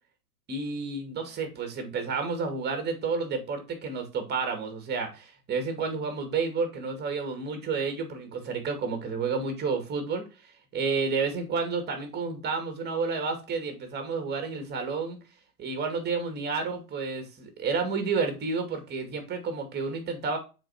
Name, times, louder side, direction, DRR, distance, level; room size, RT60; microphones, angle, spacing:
voice 1, 0.5-10.2 10.7-15.2 15.6-20.4, right 4 dB, 20° right, 7 dB, 2.4 m, -30 dB
6.4 x 4.8 x 4.3 m, 0.30 s
hypercardioid pair, 125°, 45 cm